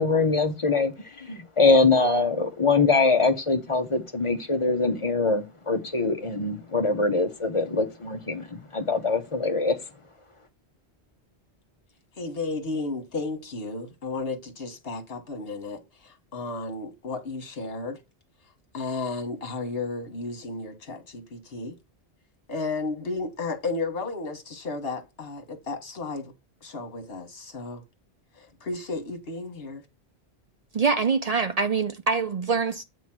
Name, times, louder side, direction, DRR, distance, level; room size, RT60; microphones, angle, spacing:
voice 1, 0.0-8.5 8.7-9.8, left 3 dB, 30° left, 0.8 m, -23 dB
voice 2, 12.2-18.0 18.7-21.7 22.5-26.3 26.6-27.8 28.3-29.8, left 3 dB, 60° left, 1.6 m, -33 dB
voice 3, 30.7-32.8, right 5 dB, 60° right, 0.4 m, -24 dB
8.3 x 3.1 x 5.9 m
omnidirectional pair, 1.1 m